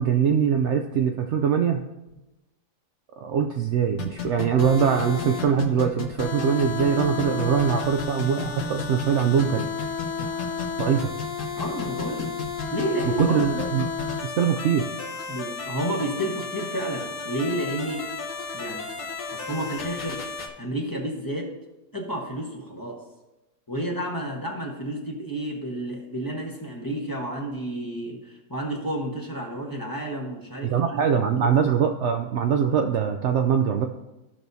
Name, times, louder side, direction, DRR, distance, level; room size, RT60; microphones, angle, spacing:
voice 1, 0.0-1.8 3.2-9.6 10.2-10.4 10.8-11.1 13.1-13.9 14.2-14.9 30.6-33.9, right 7 dB, 80° right, 5 dB, 0.6 m, -23 dB
sound 1, 4.0-20.5, left 5 dB, 65° left, 1.6 m, -32 dB
voice 2, 11.6-12.3 12.7-13.4 15.3-18.1 18.5-18.9 19.3-20.3 20.6-21.5 21.9-23.0 23.7-31.5, right 1 dB, 15° left, -2 dB, 1.1 m, -31 dB
15.5 x 6.0 x 2.7 m, 1.0 s
omnidirectional pair, 1.8 m